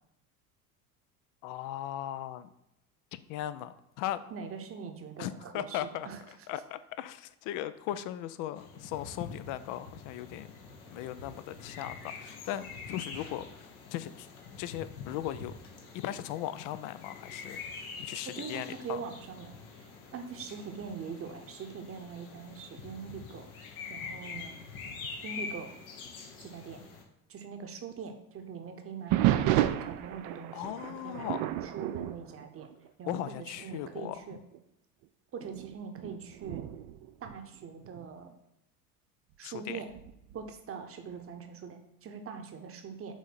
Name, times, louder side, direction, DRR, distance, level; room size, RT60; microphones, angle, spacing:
voice 1, 1.4-2.5 3.1-4.2 5.2-6.1 6.5-10.5 10.9-14.3 14.6-15.5 15.9-19.0 29.4-29.5 30.5-31.4 33.0-34.2 39.4-39.8, left 12 dB, 45° left, 14 dB, 0.5 m, -38 dB
voice 2, 4.3-6.2 18.4-23.5 23.9-24.6 25.2-25.8 26.4-26.8 27.3-29.5 29.8-32.7 33.0-34.4 35.3-36.7 37.2-38.4 39.4-39.9 40.3-43.2, right 6 dB, 30° right, 6 dB, 0.9 m, -42 dB
sound 1, 8.6-27.0, left 5 dB, 70° left, 1.2 m, -45 dB
sound 2, 29.1-33.2 33.6-33.9 34.5-34.6 35.4-38.1 39.9-40.4, right 13 dB, 50° right, 0.5 m, -32 dB
6.2 x 3.7 x 4.2 m, 0.86 s
figure-of-eight pair, 65°, 45 cm